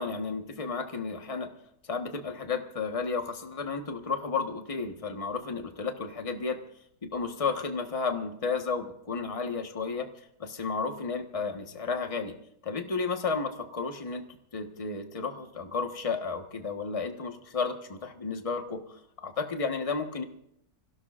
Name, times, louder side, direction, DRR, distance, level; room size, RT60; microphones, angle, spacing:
voice 1, 0.0-1.5 1.9-6.6 7.0-10.1 10.4-12.4 12.6-14.2 14.5-18.8 19.2-20.2, left 4 dB, 25° left, 5 dB, 1.3 m, -32 dB
26.5 x 16.5 x 2.5 m, 0.73 s
omnidirectional pair, 1.7 m